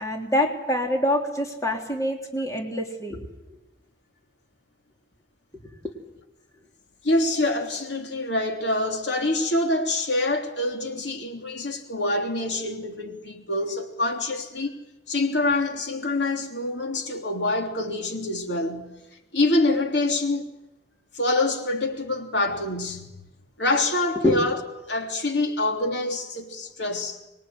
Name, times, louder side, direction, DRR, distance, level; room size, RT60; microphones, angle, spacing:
voice 1, 0.0-3.3 5.8-5.9 24.2-24.4, left 1 dB, 20° left, 3.3 m, -25 dB
voice 2, 7.0-14.8 15.1-18.9 19.3-20.5 21.1-23.1 23.6-24.6 24.8-27.2, left 2 dB, 75° left, 3.3 m, -26 dB
25.5 x 22.0 x 9.5 m
head